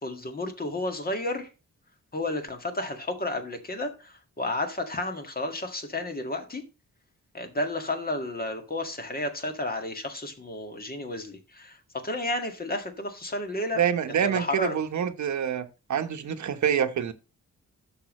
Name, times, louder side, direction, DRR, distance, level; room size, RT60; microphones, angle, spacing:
voice 1, 0.0-1.5 2.1-6.6 7.3-11.8 12.0-13.8 14.1-14.8, left 2 dB, 30° left, 1.9 m, -32 dB
voice 2, 13.8-15.6 15.9-17.1, right 8 dB, 70° right, 1.1 m, -26 dB
13.0 x 5.5 x 3.0 m
wide cardioid pair, 165°, 30 cm